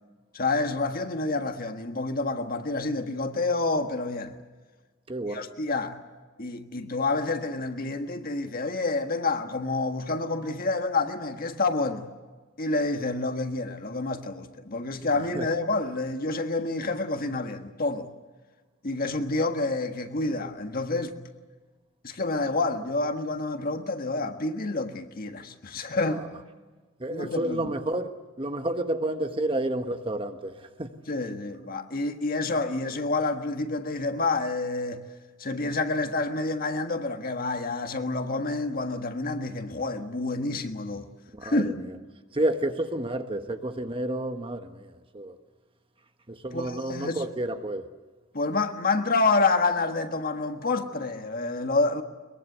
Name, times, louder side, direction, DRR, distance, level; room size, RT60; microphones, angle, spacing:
voice 1, 0.3-4.4 5.3-6.0 6.4-12.1 12.6-18.1 18.8-21.1 22.0-26.2 27.1-27.7 31.1-35.0 35.4-41.1 41.4-41.8 46.5-47.2 48.3-52.0, left 3 dB, 45° left, 1.6 m, -28 dB
voice 2, 5.1-5.5 15.4-15.5 26.0-26.2 27.0-30.9 41.3-41.6 42.3-45.4 46.3-47.9, right 1 dB, 25° right, 1.2 m, -30 dB
22.5 x 22.5 x 8.1 m
head